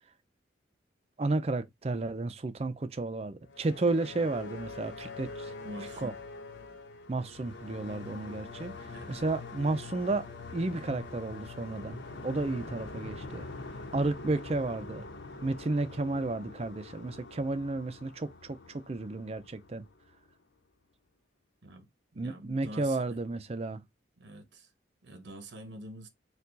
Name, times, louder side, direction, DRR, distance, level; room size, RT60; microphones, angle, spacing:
voice 1, 1.2-5.5 6.0-6.1 7.1-8.7 9.1-10.3 10.5-13.5 13.9-15.1 15.4-19.9 22.1-23.8, right 2 dB, 35° right, 0.4 m, -32 dB
sound 1, 3.5-20.3, left 3 dB, 90° left, 1.0 m, -44 dB
voice 2, 5.6-6.1 8.8-9.1 21.6-21.9 22.1-23.2 24.2-24.7 25.0-26.1, right 1 dB, 75° right, 0.8 m, -46 dB
4.5 x 2.4 x 3.8 m
head